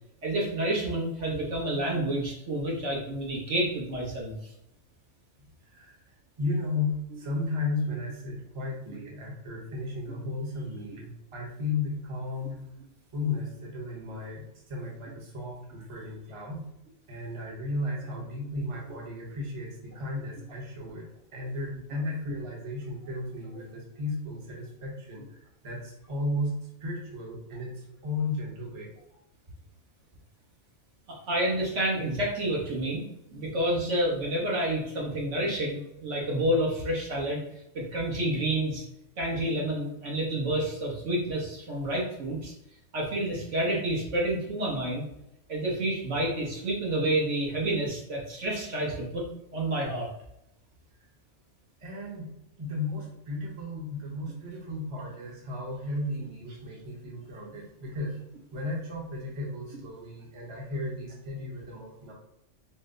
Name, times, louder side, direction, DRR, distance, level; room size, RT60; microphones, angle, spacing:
voice 1, 0.2-4.3 31.1-33.0 33.3-37.4 37.7-38.8 39.2-42.5 42.9-45.0 45.5-50.1, right 1 dB, 65° right, -3 dB, 1.4 m, -29 dB
voice 2, 5.7-6.0 6.4-12.6 13.1-16.6 17.1-21.0 21.3-26.5 26.8-28.9 51.8-52.3 52.6-58.2 58.5-62.1, left 2 dB, 25° right, -3 dB, 0.8 m, -34 dB
4.3 x 2.1 x 3.7 m, 0.81 s
omnidirectional pair, 1.4 m